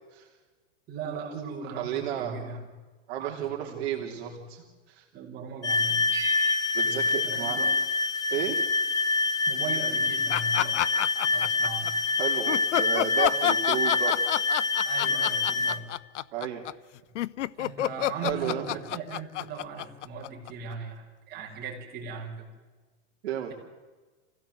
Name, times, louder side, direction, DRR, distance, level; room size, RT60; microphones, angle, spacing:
voice 1, 0.9-2.6 3.2-4.4 5.1-6.0 6.8-7.7 8.3-8.4 9.5-10.9 11.3-12.0 14.8-15.9 17.6-22.5, right 5 dB, 25° right, -1 dB, 5.6 m, -39 dB
voice 2, 1.8-2.4 3.1-4.6 4.9-5.0 6.7-7.6 8.3-8.6 12.2-14.4 16.3-16.6 18.2-18.7 23.2-23.5, right 11 dB, 60° right, 1 dB, 3.2 m, -32 dB
sound 1, 5.6-15.8, left 3 dB, 10° left, 1.0 m, -26 dB
sound 2, 6.1-8.3, right 5 dB, 10° right, 1.9 m, -42 dB
sound 3, 10.3-11.9 12.5-20.7, left 13 dB, 80° left, 0.7 m, -28 dB
27.0 x 16.5 x 7.8 m, 1.3 s
hypercardioid pair, 145°, 36 cm